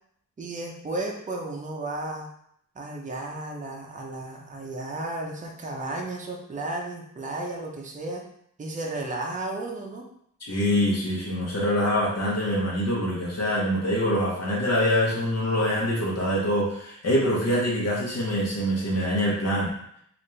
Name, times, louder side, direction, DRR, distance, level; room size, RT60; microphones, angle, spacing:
voice 1, 0.4-2.3 2.8-8.3 8.6-10.1, right 2 dB, 25° right, 0 dB, 0.6 m, -33 dB
voice 2, 10.4-19.7, equal, 55° left, -5 dB, 1.2 m, -25 dB
4.1 x 2.6 x 3.2 m, 0.69 s
wide cardioid pair, 135°, 31 cm